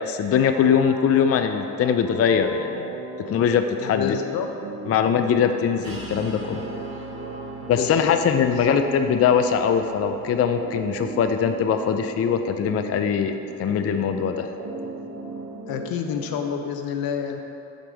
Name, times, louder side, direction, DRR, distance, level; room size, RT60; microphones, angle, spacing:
voice 1, 0.0-2.9 3.2-4.2 4.9-6.6 7.7-13.3 13.6-14.5, left 7 dB, 45° left, 7 dB, 0.4 m, -22 dB
sound 1, 0.5-16.5, right 3 dB, 60° right, 1.0 m, -37 dB
voice 2, 3.8-4.5 7.6-8.1 8.5-8.8 15.7-17.4, left 8 dB, 80° left, 5 dB, 0.7 m, -28 dB
sound 2, 5.8-11.2, right 3 dB, 85° right, 1.3 m, -40 dB
5.2 x 4.3 x 6.1 m, 2.8 s
supercardioid pair, 65°, 35 cm